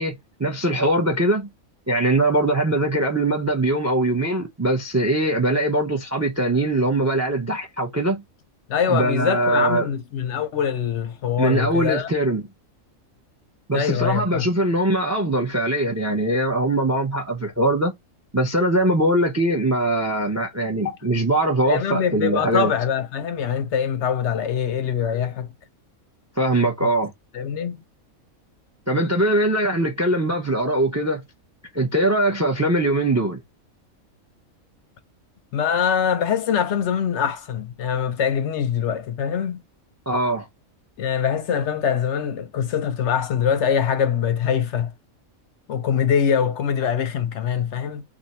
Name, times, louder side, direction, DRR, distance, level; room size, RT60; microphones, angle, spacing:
voice 1, 0.0-1.5 1.9-8.2 8.9-9.9 11.4-12.5 13.7-17.9 18.3-22.7 26.4-27.1 28.9-31.2 31.7-33.4 40.1-40.5, right 1 dB, 25° right, 0.4 m, -21 dB
voice 2, 8.7-12.1 13.7-14.5 20.8-21.2 21.7-25.5 27.3-27.8 35.5-39.6 41.0-44.9 45.7-48.0, left 8 dB, 65° left, 0.8 m, -23 dB
2.6 x 2.5 x 4.1 m
omnidirectional pair, 1.5 m